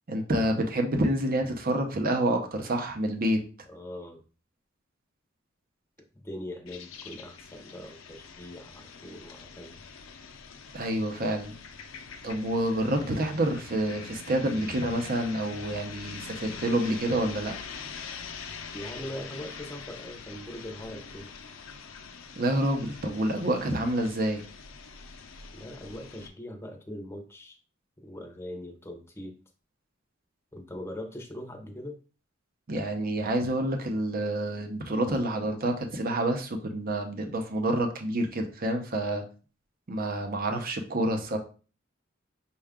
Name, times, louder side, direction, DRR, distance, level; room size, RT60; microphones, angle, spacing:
voice 1, 0.1-3.4 10.7-11.5 12.2-17.5 22.4-24.4 32.7-39.2 39.9-41.4, right 1 dB, 45° right, 5 dB, 0.7 m, -28 dB
voice 2, 3.7-4.2 6.1-9.8 18.7-21.3 25.5-27.6 28.0-29.3 30.5-32.0, left 1 dB, 15° left, 3 dB, 0.7 m, -41 dB
sound 1, 6.7-26.3, left 5 dB, 85° left, 0.6 m, -44 dB
5.5 x 2.3 x 3.6 m, 0.37 s
head